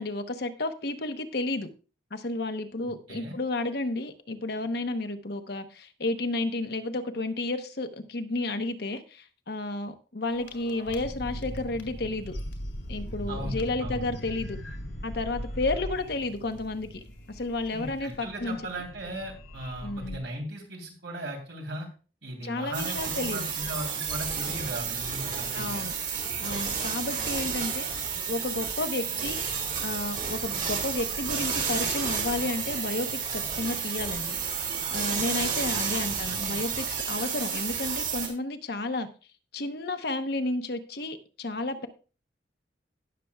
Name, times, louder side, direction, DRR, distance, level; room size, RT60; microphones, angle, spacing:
voice 1, 0.0-1.7 2.1-12.4 12.9-14.6 15.0-18.6 19.8-20.2 22.4-23.5 25.5-25.9 26.4-29.4 29.8-34.4 34.9-39.1 39.5-41.9, left 2 dB, 60° left, 8 dB, 0.9 m, -32 dB
voice 2, 2.8-3.4 13.3-14.0 17.7-21.9 22.2-25.8 35.7-36.6, right 1 dB, 75° right, 2 dB, 3.2 m, -38 dB
sound 1, 10.3-20.2, equal, 85° left, 2.4 m, -39 dB
sound 2, 22.7-38.3, right 6 dB, 45° right, 2.4 m, -31 dB
18.0 x 6.8 x 2.3 m, 0.35 s
head